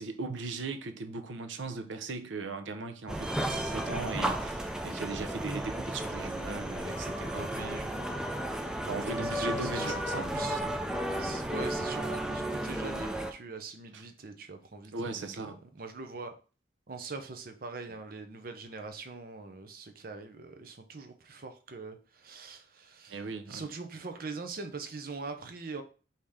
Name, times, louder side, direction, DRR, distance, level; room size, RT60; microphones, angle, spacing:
voice 1, 0.0-7.8 8.8-10.7 13.9-14.0 14.9-15.6 23.1-23.7, right 3 dB, 90° right, 0.6 m, -38 dB
sound 1, 3.1-13.3, right 1 dB, 5° right, 0.4 m, -33 dB
voice 2, 7.5-8.1 9.2-10.6 11.2-16.3 16.9-23.2 23.5-25.8, right 4 dB, 50° right, 0.6 m, -42 dB
5.0 x 2.8 x 3.6 m
head